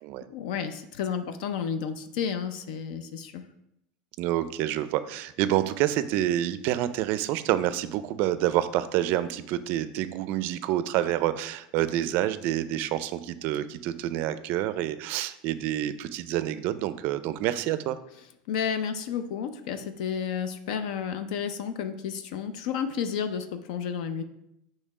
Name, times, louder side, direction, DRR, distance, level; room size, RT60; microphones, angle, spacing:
voice 1, 0.3-3.4 18.5-24.2, left 7 dB, 70° left, 9 dB, 0.5 m, -31 dB
voice 2, 4.2-18.0, right 13 dB, 50° right, 13 dB, 0.4 m, -28 dB
6.6 x 3.2 x 4.7 m, 0.80 s
supercardioid pair, 150°, 4 cm